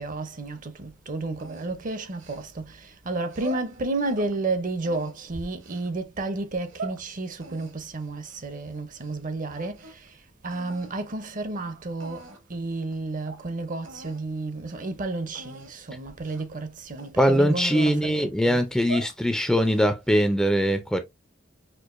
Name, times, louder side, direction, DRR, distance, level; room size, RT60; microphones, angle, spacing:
voice 1, 0.0-10.1 10.4-18.6, right 2 dB, 45° right, 0.6 m, -32 dB
sound 1, 1.4-2.7 3.2-4.3 4.8-5.9 6.5-7.0 7.4-9.2 9.4-10.1 10.5-10.9 11.6-11.7 12.0-12.5 12.9-13.0 13.3-13.4 13.8-14.2 14.6-14.8 15.3-15.7 16.2-16.5 17.0-18.2 18.6-19.2 19.6-20.1, right 3 dB, 70° right, 1.1 m, -42 dB
voice 2, 17.2-21.0, equal, 5° left, 0.4 m, -22 dB
4.5 x 2.5 x 2.4 m
head